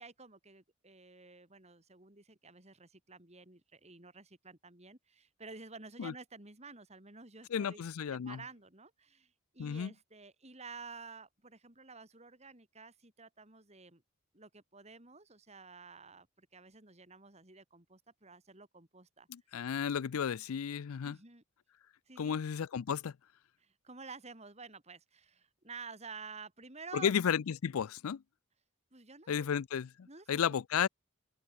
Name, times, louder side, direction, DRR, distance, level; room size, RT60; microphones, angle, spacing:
voice 1, 0.0-7.8 8.3-14.0 14.3-19.3 21.0-21.4 22.1-22.4 23.6-27.1 28.9-29.5 30.0-30.5, right 4 dB, 30° right, 3.6 m, -51 dB
voice 2, 7.5-8.4 9.6-9.9 19.3-21.2 22.2-23.1 26.9-28.2 29.3-30.9, left 7 dB, 90° left, 0.4 m, -33 dB
open air
head